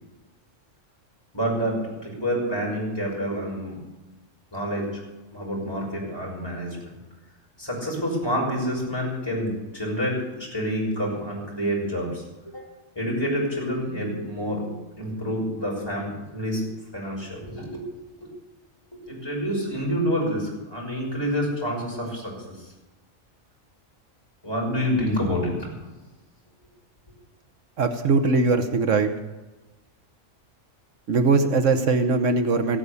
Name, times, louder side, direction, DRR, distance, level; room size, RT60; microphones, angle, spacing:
voice 1, 1.3-3.8 4.5-5.0 5.3-6.9 7.6-12.7 12.9-16.6 16.9-17.8 18.2-18.3 18.9-22.3 22.6-22.7 24.4-25.7, equal, 20° left, -3 dB, 6.4 m, -28 dB
voice 2, 27.8-29.1 31.1-32.8, right 3 dB, 75° right, 7 dB, 1.4 m, -21 dB
16.0 x 9.2 x 8.4 m, 1.1 s
omnidirectional pair, 1.3 m